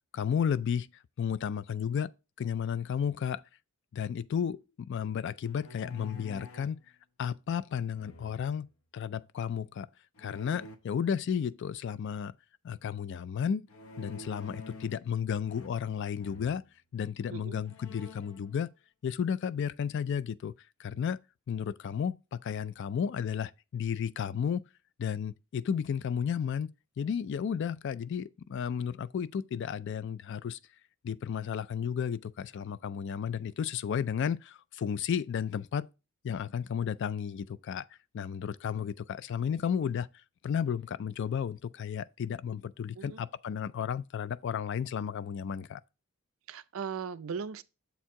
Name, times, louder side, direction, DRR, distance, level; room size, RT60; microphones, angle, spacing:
voice 1, 0.1-0.9 1.2-2.1 2.4-3.4 3.9-6.8 7.2-8.7 8.9-9.9 10.2-12.3 12.6-13.6 14.0-16.6 16.9-18.7 19.0-20.5 20.8-21.2 21.5-24.6 25.0-26.7 27.0-30.6 31.0-35.9 36.2-37.9 38.1-40.1 40.4-45.8, left 7 dB, 55° left, 0.3 m, -33 dB
sound 1, 5.4-6.8 7.9-8.7 10.2-10.8 13.7-15.1 15.4-16.6 17.2-17.3 17.6-18.4, left 2 dB, 75° left, 0.8 m, -47 dB
voice 2, 46.5-47.6, right 6 dB, 70° right, 0.4 m, -38 dB
7.2 x 4.4 x 3.7 m
head